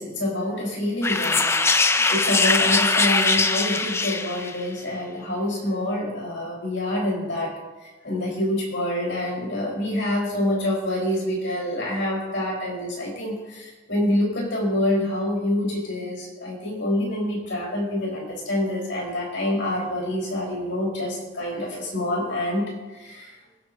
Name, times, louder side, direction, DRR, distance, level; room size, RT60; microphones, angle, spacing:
voice 1, 0.0-1.5 2.1-7.5 8.0-22.6 22.9-23.3, left 1 dB, 70° left, -3 dB, 4.7 m, -26 dB
sound 1, 1.0-4.6, left 3 dB, 15° left, 0.4 m, -21 dB
25.0 x 9.0 x 2.8 m, 1.2 s
head